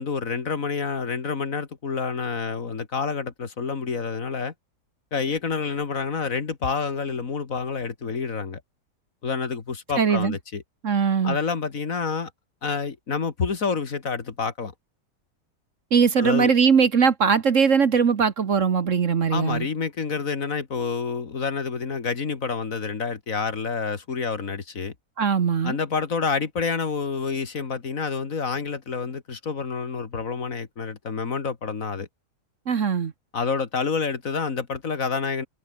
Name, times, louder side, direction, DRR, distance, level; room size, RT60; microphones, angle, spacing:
voice 1, 0.0-4.5 5.1-8.6 9.2-10.6 11.2-12.3 12.6-14.7 16.2-16.5 19.3-24.9 25.6-32.1 33.3-35.5, left 5 dB, 50° left, 2.2 m, -28 dB
voice 2, 10.0-10.4 10.8-11.4 15.9-19.7 25.2-25.8 32.7-33.1, right 6 dB, 50° right, 1.5 m, -20 dB
omnidirectional pair, 1.8 m